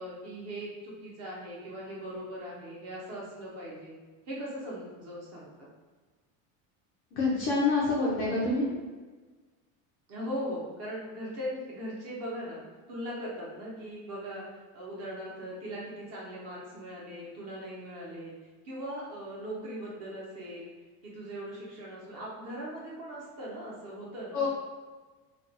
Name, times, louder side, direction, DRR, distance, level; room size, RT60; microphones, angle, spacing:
voice 1, 0.0-3.9 4.3-5.7 10.1-12.6 12.9-14.5 14.7-18.3 18.6-20.7 21.0-24.5, equal, 35° right, -5 dB, 0.8 m, -39 dB
voice 2, 7.1-8.7 24.3-24.5, left 3 dB, 35° left, -5 dB, 0.4 m, -26 dB
2.5 x 2.3 x 3.9 m, 1.3 s
cardioid pair, 180°, 42 cm